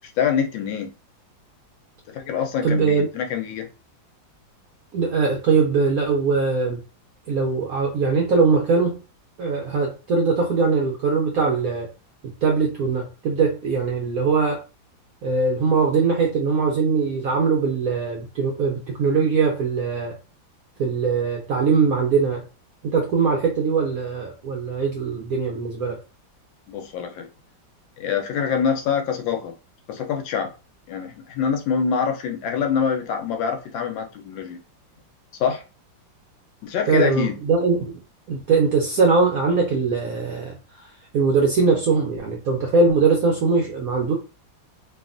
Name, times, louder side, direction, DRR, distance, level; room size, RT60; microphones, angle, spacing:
voice 1, 0.0-0.9 2.1-3.7 26.7-27.3 28.0-29.5 29.9-30.5 30.9-34.6 35.3-35.6 36.6-37.4, left 7 dB, 80° left, 1.3 m, -25 dB
voice 2, 2.6-3.1 4.9-6.8 7.3-9.0 9.4-11.9 12.2-14.6 15.2-20.1 20.8-22.4 22.8-26.0 36.9-38.0 38.3-40.6 41.1-44.1, right 4 dB, 75° right, 0.8 m, -21 dB
3.2 x 2.3 x 2.4 m
omnidirectional pair, 2.1 m